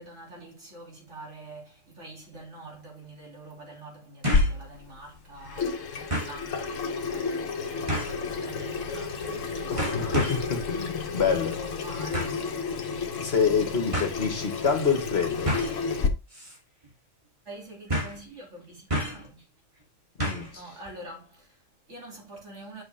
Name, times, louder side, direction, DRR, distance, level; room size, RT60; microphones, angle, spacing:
voice 1, 0.0-10.4 10.8-12.9 17.4-19.5 20.5-22.8, right 1 dB, 65° right, 3.1 m, -46 dB
sound 1, 2.3-2.4 4.2-4.6 5.0-5.1 6.1-6.4 7.9-8.2 9.2-9.4 9.8-10.5 12.1-12.4 13.4-13.5 13.9-14.1 15.5-15.8 16.3-16.6 16.8-16.9 17.9-18.2 18.9-19.3 20.2-20.6 20.9-21.0, equal, 25° right, 2.7 m, -30 dB
Water tap faucet / Sink (filling or washing), 4.3-16.1, left 4 dB, 75° left, 1.3 m, -31 dB
voice 2, 9.7-11.6 13.2-15.5 20.2-20.6, left 6 dB, 55° left, 1.6 m, -27 dB
8.2 x 6.0 x 3.4 m
omnidirectional pair, 1.3 m